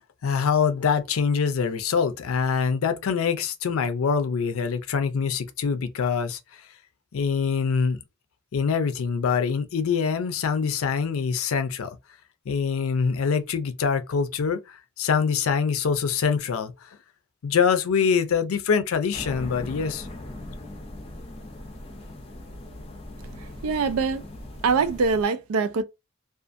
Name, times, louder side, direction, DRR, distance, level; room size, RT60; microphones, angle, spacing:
voice 1, 0.2-6.4 7.1-8.0 8.5-12.0 12.5-16.9 17.4-20.1, left 6 dB, 80° left, 0.4 m, -24 dB
sound 1, 19.1-25.2, left 1 dB, 30° left, 0.5 m, -39 dB
voice 2, 23.6-24.2 24.6-25.8, right 4 dB, 85° right, 0.4 m, -23 dB
2.5 x 2.4 x 2.5 m
head